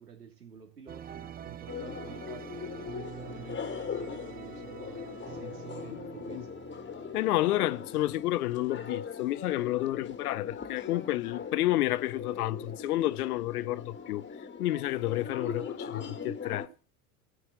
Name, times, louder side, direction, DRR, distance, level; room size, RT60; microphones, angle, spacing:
voice 1, 0.0-6.5, right 7 dB, 90° right, 3.1 m, -49 dB
sound 1, 0.9-8.5, right 8 dB, 20° right, 0.6 m, -46 dB
sound 2, 1.7-16.7, left 6 dB, 25° left, 1.7 m, -40 dB
voice 2, 7.1-14.2 14.6-16.7, left 16 dB, 75° left, 0.7 m, -30 dB
14.5 x 5.7 x 8.0 m
hypercardioid pair, 75°, 46 cm